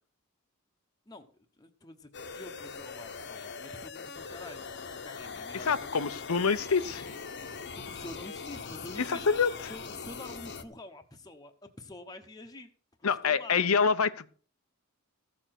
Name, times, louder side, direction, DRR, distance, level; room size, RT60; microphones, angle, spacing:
voice 1, 1.6-2.1 2.3-4.7 5.0-6.1 7.7-9.3 9.7-12.7 13.0-13.6, left 2 dB, 20° left, 4 dB, 1.0 m, -47 dB
sound 1, 2.1-10.6, left 5 dB, 50° left, 1.1 m, -41 dB
voice 2, 5.6-7.0 9.1-9.5 13.0-14.3, left 5 dB, 75° left, 12 dB, 0.8 m, -26 dB
14.5 x 6.8 x 6.0 m, 0.42 s
head